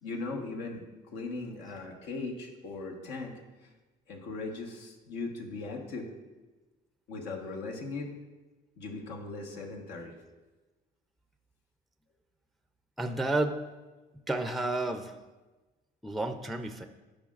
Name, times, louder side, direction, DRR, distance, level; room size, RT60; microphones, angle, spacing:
voice 1, 0.0-3.3 3.6-3.7 4.1-6.1 7.1-8.1 8.8-10.1, left 3 dB, 85° left, 0 dB, 1.3 m, -39 dB
voice 2, 13.0-13.6 14.3-15.1 16.0-16.9, right 2 dB, ahead, 7 dB, 0.4 m, -31 dB
13.0 x 5.1 x 2.4 m, 1.2 s
cardioid pair, 110°, 17 cm